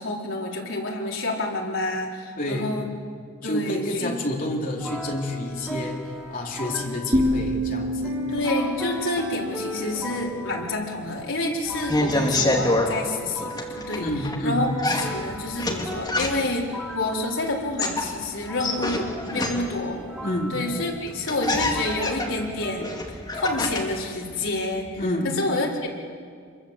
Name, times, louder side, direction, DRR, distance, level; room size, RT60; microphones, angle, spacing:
voice 1, 0.0-2.9 3.4-4.1 8.3-20.0 20.5-22.9 23.3-24.9 25.2-25.9, left 2 dB, 70° left, -2 dB, 4.3 m, -28 dB
voice 2, 2.4-2.8 3.4-6.0 6.3-8.2 14.0-14.6 20.2-20.6 25.0-25.3, left 1 dB, 40° left, 0 dB, 3.4 m, -28 dB
sound 1, 4.7-23.7, equal, 5° right, 2.8 m, -38 dB
sound 2, 7.1-11.0, equal, 30° right, 2.7 m, -28 dB
sound 3, 11.7-12.9 13.5-14.4 14.8-16.6 17.6-19.9 20.7-20.8 21.1-24.0 24.3-25.0, left 2 dB, 20° left, 2.5 m, -27 dB
26.0 x 22.0 x 8.1 m, 2.1 s
head